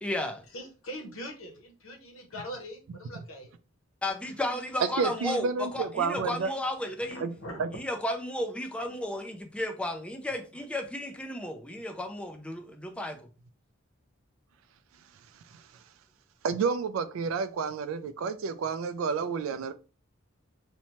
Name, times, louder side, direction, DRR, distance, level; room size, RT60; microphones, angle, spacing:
voice 1, 0.0-0.4 4.0-7.2 7.7-13.3, left 1 dB, 5° left, 0.3 m, -33 dB
voice 2, 0.5-3.5 5.0-5.2 6.2-6.3 7.1-7.6, equal, 80° left, 0.8 m, -42 dB
voice 3, 5.0-6.5 7.2-7.3 7.6-7.7 16.4-19.7, right 5 dB, 75° right, 0.3 m, -30 dB
2.7 x 2.1 x 2.9 m
head